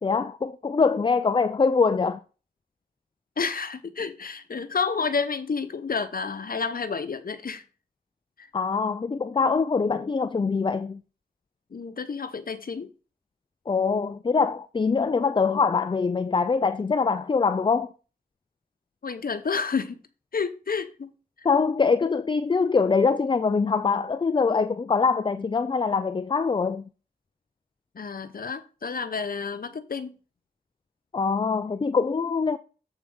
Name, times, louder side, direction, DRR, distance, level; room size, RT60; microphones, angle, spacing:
voice 1, 0.0-2.2 8.5-11.0 13.7-17.9 21.4-26.8 31.1-32.6, left 5 dB, 30° left, 0.4 m, -23 dB
voice 2, 3.4-7.6 8.4-8.5 11.7-12.9 19.0-20.0 20.3-21.1 21.4-21.5 27.9-30.1, left 5 dB, 55° left, 0.9 m, -30 dB
7.7 x 4.5 x 5.4 m
cardioid pair, 70°, 18 cm